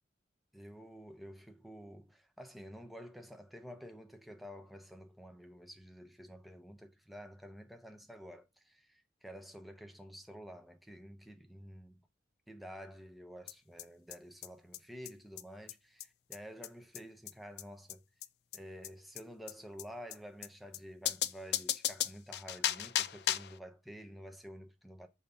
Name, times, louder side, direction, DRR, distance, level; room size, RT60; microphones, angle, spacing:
voice 1, 0.5-12.0 12.5-18.0 18.5-25.1, equal, ahead, 0.6 m, -50 dB
sound 1, 13.5-13.6 13.8-13.9 14.1-14.2 14.4-14.5 14.7-14.8 15.0-15.1 15.4-15.5 15.7-15.8 16.0-16.1 16.3-16.4 16.6-16.7 16.9-17.0 17.3-17.4 17.6-17.7 17.9-18.0 18.2-18.3 18.5-18.6 18.8-18.9 19.2-19.3 19.5-19.6 19.8-19.9 20.1-20.2 20.4-20.5 20.7-20.8 21.1-23.6, left 12 dB, 65° left, 0.4 m, -35 dB
6.6 x 2.7 x 5.3 m
head